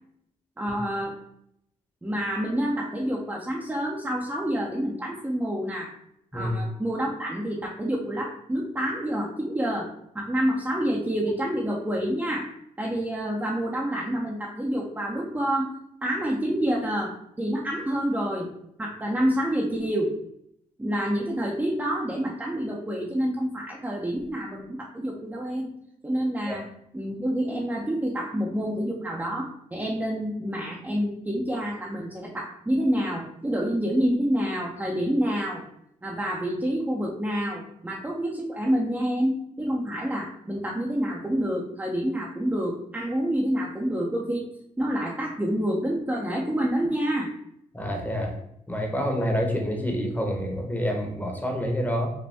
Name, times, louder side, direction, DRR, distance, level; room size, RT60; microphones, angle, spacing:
voice 1, 0.6-1.2 2.0-5.9 6.3-9.9 10.1-12.5 12.8-15.7 16.0-18.5 18.8-20.2 20.8-25.7 26.0-26.7 26.9-35.6 36.0-44.5 44.8-47.3, equal, 10° right, -3 dB, 0.7 m, -28 dB
voice 2, 47.7-48.4 48.7-52.1, equal, 10° left, 2 dB, 1.1 m, -27 dB
5.1 x 2.2 x 3.5 m, 0.75 s
cardioid pair, 75°, 15 cm